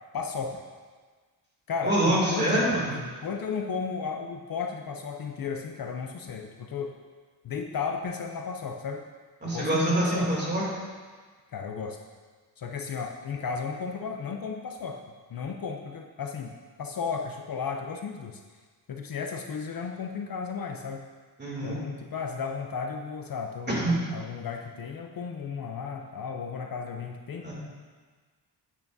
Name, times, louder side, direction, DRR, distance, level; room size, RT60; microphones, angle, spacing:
voice 1, 0.1-0.6 1.7-6.9 7.4-9.1 9.4-10.3 11.5-12.0 12.6-15.0 15.3-18.4 18.9-21.0 21.6-27.5, left 5 dB, 55° left, 3 dB, 0.6 m, -34 dB
voice 2, 1.8-2.9 9.4-10.6 21.4-21.8 23.7-23.9 27.4-27.5, right 1 dB, 25° right, -5 dB, 2.6 m, -25 dB
9.5 x 8.1 x 2.7 m, 1.5 s
wide cardioid pair, 135°, 42 cm